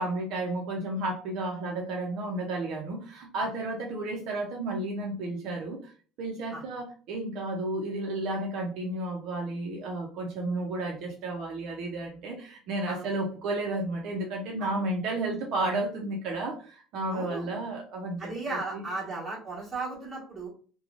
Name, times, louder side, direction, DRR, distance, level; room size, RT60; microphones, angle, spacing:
voice 1, 0.0-5.9 6.2-18.9, right 2 dB, 60° right, 0 dB, 0.6 m, -32 dB
voice 2, 17.1-17.5 18.2-20.5, right 3 dB, 15° right, -6 dB, 1.3 m, -36 dB
2.9 x 2.2 x 2.5 m, 0.40 s
cardioid pair, 160°, 0 cm